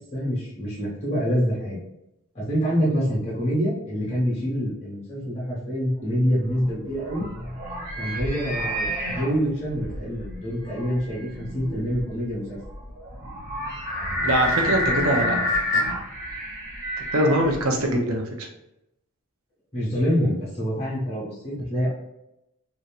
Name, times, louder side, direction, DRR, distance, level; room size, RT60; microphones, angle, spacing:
voice 1, 0.1-1.8 2.3-7.3 8.0-12.6 19.7-21.9, equal, 30° left, -6 dB, 1.4 m, -26 dB
sound 1, 6.5-18.0, left 1 dB, 40° right, 1.2 m, -29 dB
voice 2, 14.2-15.8 17.1-18.5, right 1 dB, 75° right, 2 dB, 0.7 m, -23 dB
3.0 x 2.7 x 2.4 m, 0.87 s
head